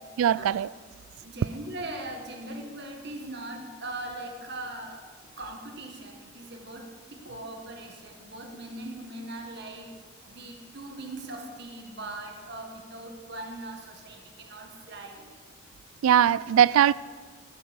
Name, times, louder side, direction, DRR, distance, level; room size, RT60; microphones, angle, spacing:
voice 1, 0.2-0.7 16.0-16.9, right 9 dB, 85° right, 0.3 m, -20 dB
voice 2, 1.2-9.9 10.3-15.3, right 1 dB, 55° right, 1.7 m, -40 dB
19.5 x 8.1 x 4.7 m
head